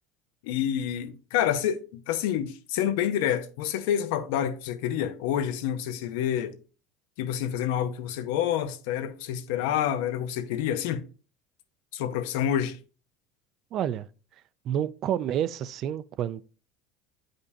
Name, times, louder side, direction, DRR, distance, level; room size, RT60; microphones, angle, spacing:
voice 1, 0.4-6.5 7.2-11.0 11.9-12.8, left 10 dB, 80° left, 0.8 m, -28 dB
voice 2, 13.7-14.1 14.6-16.4, right 10 dB, 50° right, 0.4 m, -29 dB
8.4 x 5.2 x 2.7 m
supercardioid pair, 110°, 0 cm